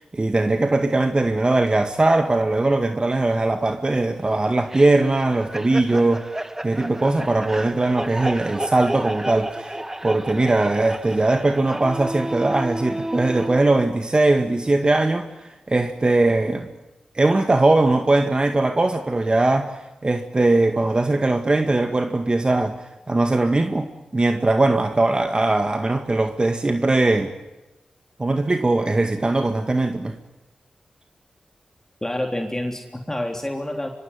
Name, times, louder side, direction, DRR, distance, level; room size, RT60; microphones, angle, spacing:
voice 1, 0.0-6.3 6.6-9.8 10.0-16.7 17.1-22.8 23.1-27.3 28.2-30.2, right 2 dB, 35° right, 2.0 m, -20 dB
sound 1, 4.7-13.6, right 1 dB, 15° right, 1.4 m, -32 dB
voice 2, 32.0-33.9, left 1 dB, 15° left, 3.5 m, -28 dB
24.5 x 24.5 x 9.7 m
cardioid pair, 40°, 3 cm